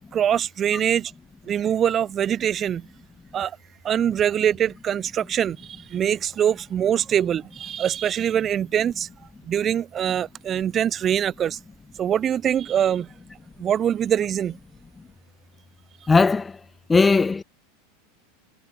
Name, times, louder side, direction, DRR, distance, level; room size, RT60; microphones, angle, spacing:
voice 1, 0.1-1.1 1.5-2.9 3.3-3.6 3.8-9.1 9.4-11.6 12.0-13.1 13.6-14.6, right 9 dB, 35° right, 1.3 m, -23 dB
voice 2, 16.1-16.5 16.9-17.4, left 4 dB, 15° left, 0.5 m, -17 dB
hypercardioid pair, 95°, 0 cm